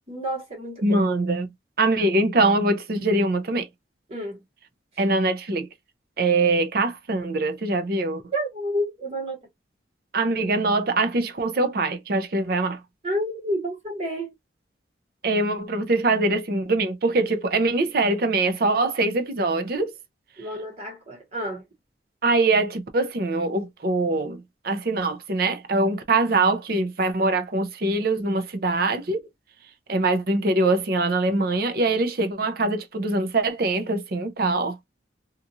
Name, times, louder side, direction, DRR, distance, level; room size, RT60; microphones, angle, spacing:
voice 1, 0.1-1.0 4.1-4.4 8.3-9.4 13.0-14.3 20.4-21.6, equal, 35° right, 1.0 m, -29 dB
voice 2, 0.8-1.5 1.8-3.7 5.0-5.7 6.2-8.2 10.1-12.8 15.2-19.9 22.2-29.2 29.9-34.8, right 2 dB, 50° right, 0.5 m, -23 dB
2.9 x 2.4 x 2.6 m
head